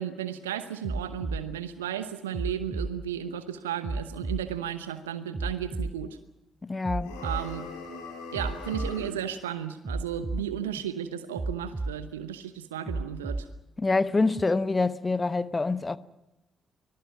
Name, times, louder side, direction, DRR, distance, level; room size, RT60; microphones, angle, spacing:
voice 1, 0.0-6.2 7.2-7.7 8.3-13.5, right 10 dB, 80° right, 0.9 m, -34 dB
sound 1, 0.8-1.4 2.3-2.9 3.8-4.4 5.3-5.9 6.8-7.4 8.3-8.9 9.8-10.4 11.4-11.9 12.9-13.5 14.4-14.5, right 2 dB, 25° right, 0.9 m, -32 dB
voice 2, 6.6-7.1 13.8-16.0, left 3 dB, 25° left, 1.1 m, -26 dB
sound 2, 7.0-9.2, left 3 dB, 75° left, 6.2 m, -40 dB
25.0 x 19.5 x 7.4 m
figure-of-eight pair, 40°, 0 cm